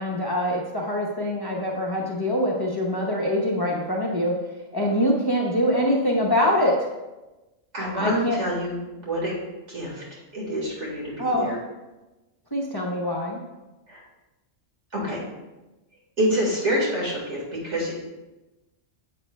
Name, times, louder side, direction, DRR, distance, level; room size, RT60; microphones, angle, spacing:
voice 1, 0.0-4.3 4.7-6.9 7.9-8.4 11.2-11.6 12.5-13.4, equal, 20° left, -2 dB, 0.9 m, -24 dB
voice 2, 7.7-9.3 9.7-10.0 10.3-11.6 13.9-14.0 14.9-15.2 16.2-17.9, equal, 70° right, -4 dB, 2.1 m, -27 dB
9.7 x 7.7 x 2.2 m, 1.1 s
omnidirectional pair, 1.3 m